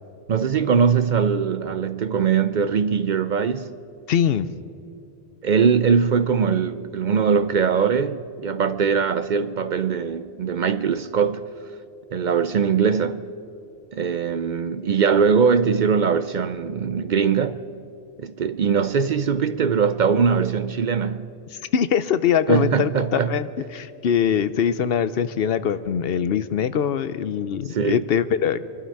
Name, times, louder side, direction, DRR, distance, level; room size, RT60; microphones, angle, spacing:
voice 1, 0.3-3.7 5.4-11.5 12.1-13.3 13.9-17.6 18.2-21.3 22.5-23.4 27.7-28.1, right 6 dB, 55° right, 0.6 m, -21 dB
voice 2, 4.1-4.5 21.7-28.6, left 8 dB, 70° left, 0.8 m, -22 dB
25.5 x 12.0 x 4.7 m
omnidirectional pair, 1.1 m